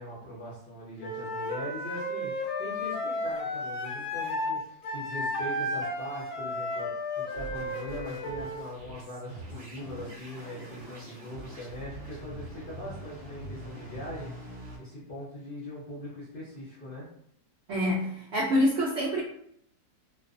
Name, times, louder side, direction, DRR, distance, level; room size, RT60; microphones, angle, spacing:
voice 1, 0.0-17.1, equal, 50° left, -7 dB, 0.6 m, -41 dB
Wind instrument woodwind instrument, 1.0-4.5 4.8-8.6, left 1 dB, 85° left, 1.2 m, -33 dB
sound 1, 7.3-14.8, right 1 dB, 45° right, 0.9 m, -44 dB
voice 2, 17.7-19.2, equal, 75° right, -5 dB, 0.6 m, -26 dB
2.5 x 2.3 x 2.5 m, 0.70 s
omnidirectional pair, 1.7 m